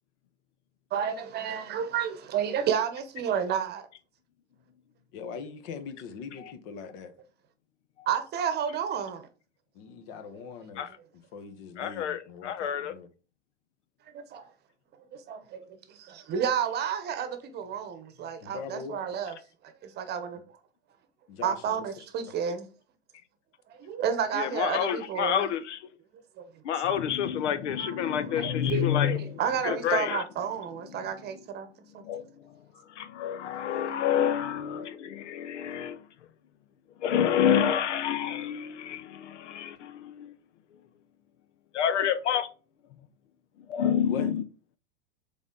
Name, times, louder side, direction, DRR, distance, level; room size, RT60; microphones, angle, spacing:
voice 1, 0.9-3.9 8.1-9.3 14.1-14.5 15.1-19.4 19.6-20.4 21.4-22.7 23.7-25.5 26.4-26.5 27.8-31.7 31.9-32.0, right 8 dB, 30° right, 0.9 m, -31 dB
voice 2, 5.1-7.1 9.7-10.9 11.3-13.1 18.4-19.2 21.3-21.8 44.0-44.4, left 6 dB, 55° left, 1.2 m, -41 dB
voice 3, 11.8-12.9 24.3-25.8 26.6-30.2 32.0-32.2 33.0-36.0 37.0-40.3 41.7-42.5 43.7-44.4, left 9 dB, 80° left, 0.8 m, -28 dB
7.0 x 4.0 x 3.8 m
supercardioid pair, 135°, 35 cm